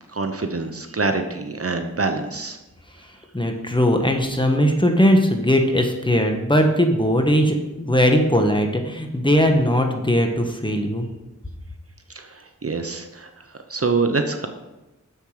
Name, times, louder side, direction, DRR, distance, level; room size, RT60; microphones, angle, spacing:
voice 1, 0.1-2.6 12.1-13.3 13.7-14.5, right 3 dB, 50° right, 6 dB, 0.9 m, -25 dB
voice 2, 3.3-11.1, equal, 15° left, 3 dB, 1.4 m, -19 dB
7.2 x 7.1 x 5.0 m, 1.0 s
cardioid pair, 45°, 31 cm